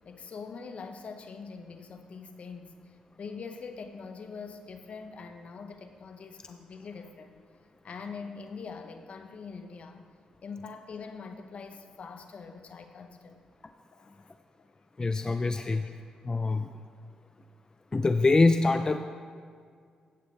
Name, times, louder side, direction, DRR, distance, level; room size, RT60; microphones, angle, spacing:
voice 1, 0.0-7.4 7.8-10.0 10.4-13.4 13.9-14.3 15.3-15.9, left 5 dB, 60° left, 7 dB, 0.9 m, -43 dB
voice 2, 15.0-15.9 16.2-16.7 17.9-19.0, left 3 dB, 30° left, 8 dB, 0.4 m, -24 dB
14.5 x 8.3 x 3.3 m, 2.1 s
supercardioid pair, 55°, 2 cm